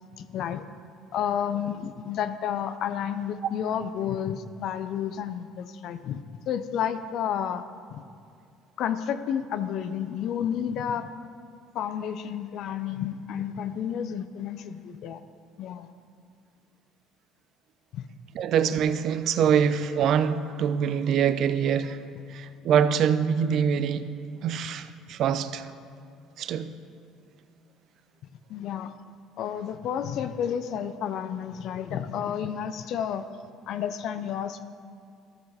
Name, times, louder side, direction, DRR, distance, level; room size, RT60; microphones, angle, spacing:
voice 1, 0.2-0.6 1.1-7.6 7.9-8.0 8.8-11.1 11.7-15.2 15.6-15.9 17.9-18.0 28.5-28.9 29.4-33.2 33.7-34.6, left 9 dB, 65° left, 10 dB, 0.4 m, -31 dB
voice 2, 18.3-22.0 22.3-24.1 24.4-25.7 26.4-26.7, right 7 dB, 60° right, 13 dB, 0.4 m, -24 dB
14.5 x 5.7 x 4.2 m, 2.3 s
supercardioid pair, 85°, 0 cm